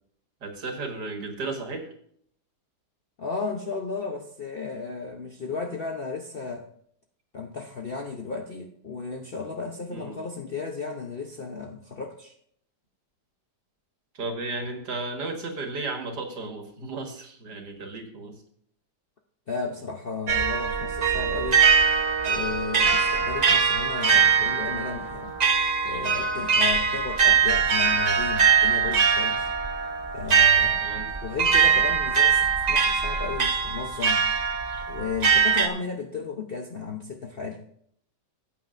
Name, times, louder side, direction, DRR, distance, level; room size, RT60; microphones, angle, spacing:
voice 1, 0.4-1.9 9.9-10.2 14.1-18.4 30.8-31.1, right 3 dB, 70° right, 3 dB, 2.3 m, -34 dB
voice 2, 3.2-6.7 7.3-12.3 19.5-21.6 22.2-25.3 25.8-29.5 30.1-34.2 34.9-37.6, left 5 dB, 50° left, 3 dB, 0.7 m, -34 dB
sound 1, 20.3-35.7, right 6 dB, 45° right, 0.5 m, -22 dB
17.0 x 8.5 x 2.6 m, 0.66 s
omnidirectional pair, 1.8 m